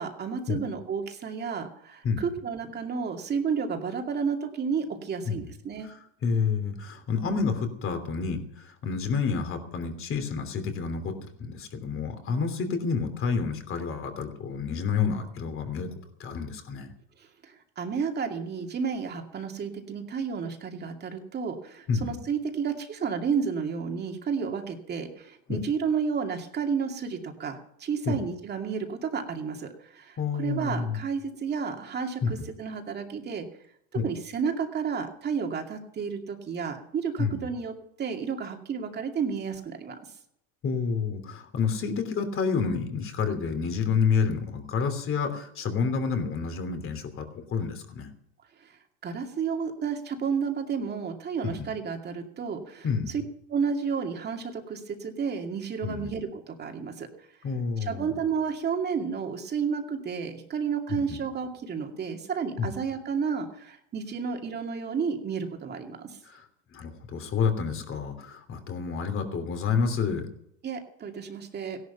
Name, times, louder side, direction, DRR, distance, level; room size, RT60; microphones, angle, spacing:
voice 1, 0.0-5.9 17.4-33.5 34.0-40.0 48.6-48.8 49.0-53.2 53.5-57.1 57.8-66.2 70.6-71.8, right 6 dB, 25° right, 3 dB, 2.4 m, -31 dB
voice 2, 6.2-15.9 16.2-16.9 21.9-22.2 25.5-25.6 28.1-28.2 30.2-31.0 32.2-32.3 33.9-34.1 37.2-37.4 40.6-48.1 51.6-51.7 52.8-53.1 55.8-56.1 57.4-58.2 60.9-61.2 62.6-62.7 66.3-66.5 66.7-70.3, left 5 dB, 30° left, 7 dB, 3.0 m, -29 dB
16.5 x 11.5 x 5.8 m, 0.75 s
supercardioid pair, 130°, 39 cm